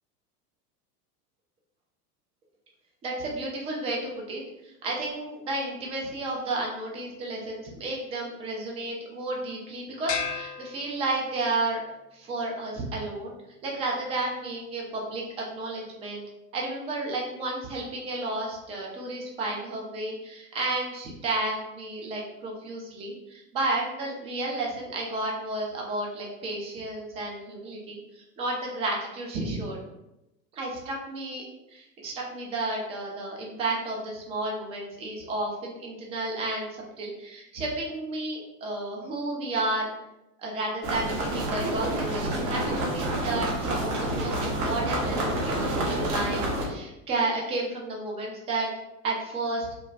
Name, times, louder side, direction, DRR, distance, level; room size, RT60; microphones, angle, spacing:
voice 1, 3.0-11.8 12.1-13.3 13.6-16.2 16.5-29.8 30.5-31.4 31.7-39.9 40.4-48.7 49.0-49.7, right 2 dB, 15° right, -1 dB, 0.3 m, -32 dB
sound 1, 10.1-11.6, left 6 dB, 85° left, 0.5 m, -34 dB
sound 2, 40.8-46.7, right 1 dB, 50° right, 0.9 m, -28 dB
3.1 x 2.1 x 2.5 m, 0.90 s
hypercardioid pair, 90°, 47 cm